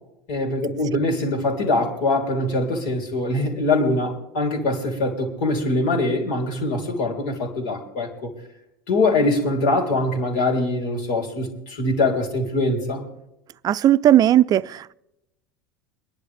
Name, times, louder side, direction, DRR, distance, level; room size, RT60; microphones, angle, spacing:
voice 1, 0.3-8.3 8.9-13.0, left 2 dB, 65° left, 3.6 m, -23 dB
voice 2, 13.6-14.9, right 12 dB, 35° right, 0.5 m, -17 dB
24.0 x 11.0 x 3.5 m
hypercardioid pair, 85°, 11 cm